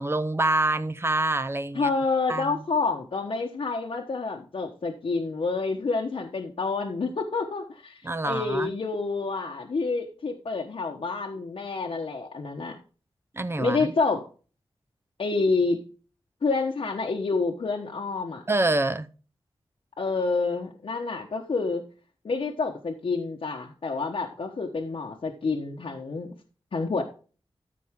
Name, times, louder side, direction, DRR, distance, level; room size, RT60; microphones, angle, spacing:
voice 1, 0.0-1.9 2.3-2.6 8.0-8.7 13.3-13.8 18.5-19.1, right 2 dB, 25° right, 0.6 m, -26 dB
voice 2, 1.7-12.8 13.6-14.3 15.2-15.8 16.4-18.4 20.0-21.8 22.2-26.3 26.7-27.0, left 4 dB, 70° left, 1.1 m, -28 dB
13.5 x 5.3 x 3.6 m
wide cardioid pair, 110°, 10 cm